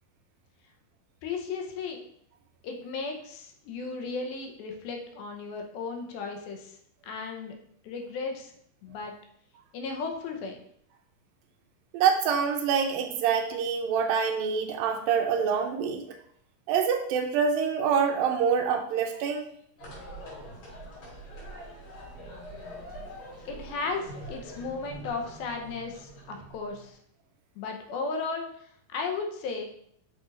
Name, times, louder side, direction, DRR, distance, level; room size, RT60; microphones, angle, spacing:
voice 1, 1.2-2.0 2.6-6.8 7.0-7.6 7.8-8.5 8.8-9.1 9.7-10.6 23.5-27.0 27.6-28.5 28.9-29.7, left 4 dB, 85° left, 3 dB, 2.7 m, -35 dB
voice 2, 11.9-16.0 16.7-19.5, right 6 dB, 80° right, 4 dB, 2.3 m, -26 dB
sound 1, 19.8-26.9, right 1 dB, 65° left, 4.9 m, -44 dB
8.2 x 6.1 x 2.5 m, 0.67 s
omnidirectional pair, 4.3 m